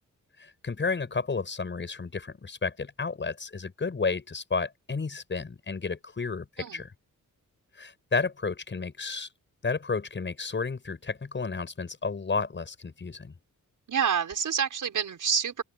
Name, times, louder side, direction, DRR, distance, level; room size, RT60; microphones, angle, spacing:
voice 1, 0.4-6.9 7.8-9.3 9.6-13.3, left 4 dB, 35° left, 7.7 m, -32 dB
voice 2, 13.9-15.6, right 7 dB, 65° right, 5.5 m, -27 dB
open air
wide cardioid pair, 155°, 33 cm